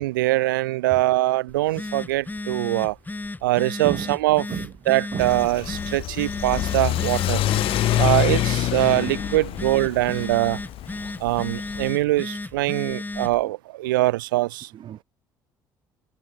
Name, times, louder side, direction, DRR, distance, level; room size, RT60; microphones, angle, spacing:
voice 1, 0.0-3.0 3.4-4.4 4.9-7.4 8.0-10.6 11.2-14.7, right 18 dB, 75° right, 1.2 m, -23 dB
Telephone, 1.5-13.4, left 2 dB, 15° left, 7.9 m, -34 dB
Car / Accelerating revving vroom, 5.2-11.9, left 14 dB, 55° left, 1.4 m, -26 dB
voice 2, 7.4-8.3 10.1-10.3 11.2-11.3 13.4-13.5 14.7-15.0, right 10 dB, 50° right, 3.3 m, -35 dB
figure-of-eight pair, 50°, 11 cm